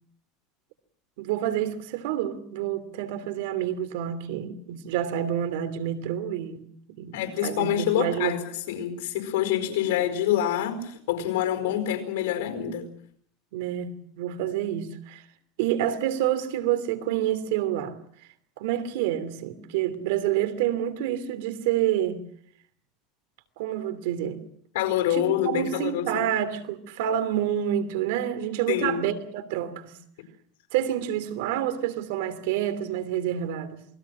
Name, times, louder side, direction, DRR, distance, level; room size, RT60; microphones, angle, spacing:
voice 1, 1.2-7.2 7.4-8.4 13.5-15.2 15.6-18.0 18.6-22.2 23.6-24.4 25.1-30.0 30.7-33.9, right 11 dB, 75° right, 2.8 m, -28 dB
voice 2, 7.1-12.9 24.7-26.3 28.7-29.0, left 11 dB, 85° left, 4.8 m, -26 dB
28.0 x 21.0 x 6.2 m
supercardioid pair, 150°, 0 cm